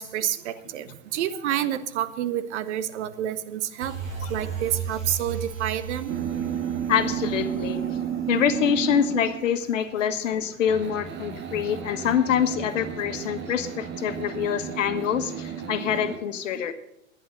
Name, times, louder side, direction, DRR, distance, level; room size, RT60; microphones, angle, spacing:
voice 1, 0.0-4.0 4.3-6.1, right 11 dB, 60° right, 14 dB, 1.1 m, -29 dB
sound 1, 3.8-9.4 9.8-9.9, right 6 dB, 85° right, 4.3 m, -36 dB
sound 2, 6.1-9.6 10.7-16.2, right 9 dB, 30° right, 1.4 m, -32 dB
voice 2, 6.9-7.8 8.3-16.7, left 8 dB, 70° left, 10 dB, 1.5 m, -25 dB
11.0 x 9.9 x 6.6 m, 0.82 s
hypercardioid pair, 110°, 40 cm